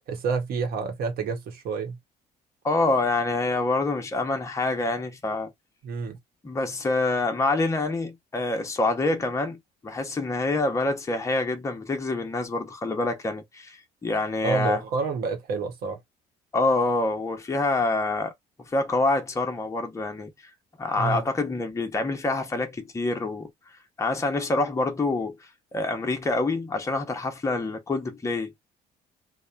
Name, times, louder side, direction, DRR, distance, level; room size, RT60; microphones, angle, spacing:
voice 1, 0.1-2.0 5.8-6.2 14.4-16.0 21.0-21.2, right 4 dB, 65° right, 1.0 m, -28 dB
voice 2, 2.6-5.5 6.4-14.8 16.5-18.3 18.7-20.3 20.8-23.5 24.0-25.4 25.7-28.7, left 2 dB, 15° left, 0.7 m, -26 dB
2.8 x 2.1 x 2.3 m
cardioid pair, 110°, 17 cm